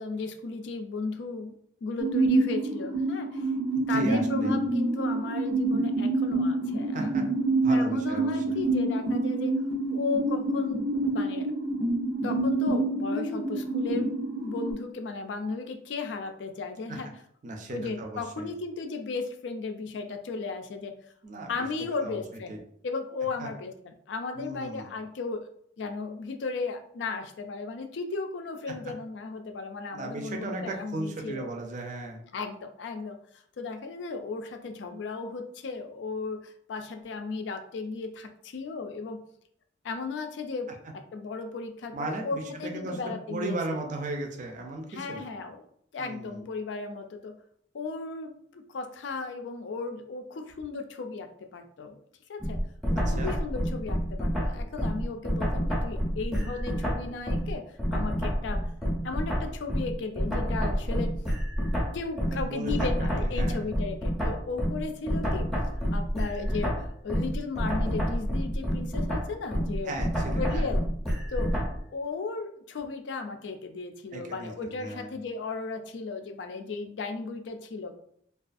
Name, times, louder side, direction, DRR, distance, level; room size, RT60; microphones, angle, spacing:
voice 1, 0.0-1.5 1.8-3.5 3.9-7.1 7.7-9.5 9.9-10.9 11.1-11.5 12.2-14.1 14.4-17.1 17.7-20.9 21.5-22.6 22.8-25.5 25.8-31.5 32.3-33.2 33.6-39.2 39.8-40.7 41.1-43.6 44.9-45.7 45.9-47.3 47.7-52.0 52.3-52.6 52.9-57.6 57.9-58.6 59.0-61.1 61.9-65.5 65.9-69.9 70.4-70.8 71.3-71.5 71.9-77.9, left 4 dB, 70° left, 6 dB, 0.4 m, -35 dB
sound 1, 2.0-14.7, right 2 dB, 90° right, 0.6 m, -27 dB
voice 2, 3.7-4.5 6.9-7.2 7.6-8.6 16.9-17.0 17.4-18.5 21.2-22.2 22.5-22.6 23.4-23.5 24.3-24.9 29.9-32.2 41.9-45.2 46.0-46.5 53.1-53.3 62.3-63.7 69.9-70.7 74.1-75.1, right 2 dB, 45° right, 2 dB, 0.4 m, -36 dB
sound 2, 52.4-57.5 57.8-71.8, equal, ahead, 0.6 m, -28 dB
2.4 x 2.3 x 2.5 m, 0.66 s
head